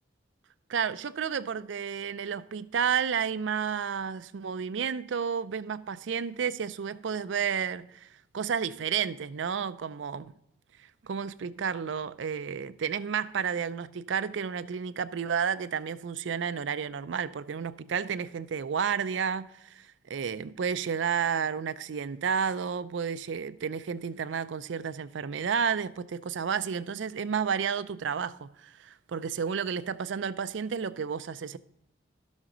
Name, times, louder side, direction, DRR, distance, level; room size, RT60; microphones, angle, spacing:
voice 1, 0.7-8.1 8.3-10.3 11.0-31.6, right 7 dB, 80° right, 0.4 m, -31 dB
12.5 x 6.2 x 3.8 m
head